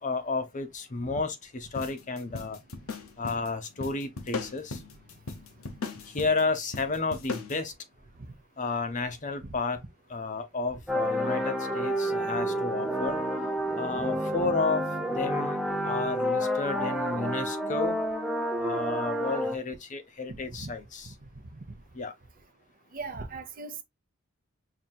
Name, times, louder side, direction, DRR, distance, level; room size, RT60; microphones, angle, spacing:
voice 1, 0.0-2.6 3.2-4.8 6.1-7.7 8.6-9.8 10.1-13.2 13.8-15.6 15.8-18.0 18.6-21.1 21.9-22.1, left 3 dB, 35° left, 0.7 m, -32 dB
sound 1, 1.8-7.6, left 4 dB, 80° left, 0.8 m, -38 dB
sound 2, 10.9-19.6, equal, ahead, 0.6 m, -29 dB
voice 2, 20.3-20.7 22.9-23.8, right 3 dB, 40° right, 0.7 m, -39 dB
5.6 x 2.8 x 2.2 m
head